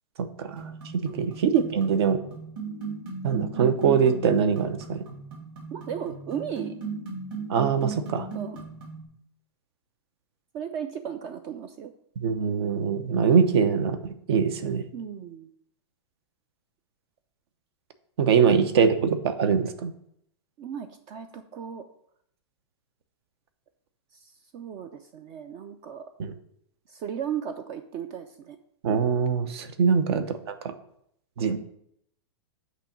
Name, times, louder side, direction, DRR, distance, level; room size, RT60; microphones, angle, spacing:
voice 1, 0.2-0.6 0.9-2.2 3.2-5.0 7.5-8.3 12.2-14.8 18.2-19.9 26.2-26.3 28.8-30.7 31.4-31.6, right 6 dB, 65° right, 10 dB, 0.8 m, -23 dB
sound 1, 0.6-9.0, right 4 dB, 45° right, 2.8 m, -37 dB
voice 2, 5.7-6.8 8.3-8.6 10.5-11.9 14.9-15.5 18.4-18.5 18.8-18.9 20.6-21.8 24.1-26.0 26.9-28.6, right 8 dB, 30° right, 9 dB, 0.4 m, -36 dB
8.2 x 3.0 x 5.8 m, 0.71 s
hypercardioid pair, 150°, 14 cm